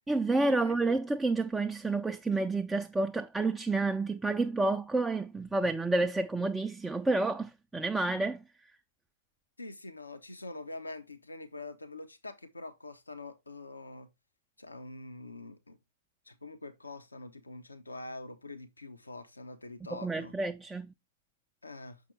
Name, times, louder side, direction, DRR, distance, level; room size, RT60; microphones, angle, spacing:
voice 1, 0.1-8.4 19.9-20.9, right 2 dB, 5° right, 0.4 m, -29 dB
voice 2, 9.6-14.1 14.6-15.8 16.3-20.3 21.6-22.0, left 2 dB, 80° left, 1.0 m, -45 dB
6.6 x 5.4 x 3.3 m
figure-of-eight pair, 110°, 0 cm